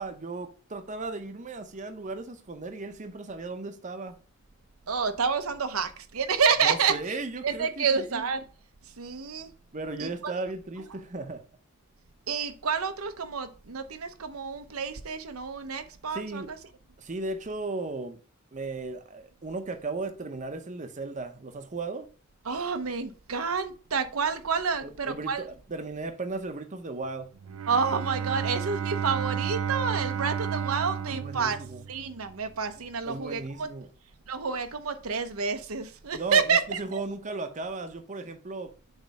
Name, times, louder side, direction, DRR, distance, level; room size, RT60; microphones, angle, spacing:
voice 1, 0.0-4.2 6.6-8.3 9.7-11.4 16.1-16.5 17.0-18.2 18.5-22.1 24.8-27.3 31.1-31.8 33.1-33.9 36.1-36.4 36.8-38.7, right 3 dB, 35° right, 0.7 m, -36 dB
voice 2, 4.9-8.4 8.8-9.5 10.0-10.3 12.3-16.6 22.5-25.4 27.7-31.6 31.9-33.7 34.3-37.0, right 5 dB, 85° right, 0.8 m, -29 dB
Bowed string instrument, 27.4-32.3, right 7 dB, 70° right, 0.4 m, -32 dB
7.2 x 3.2 x 5.2 m
head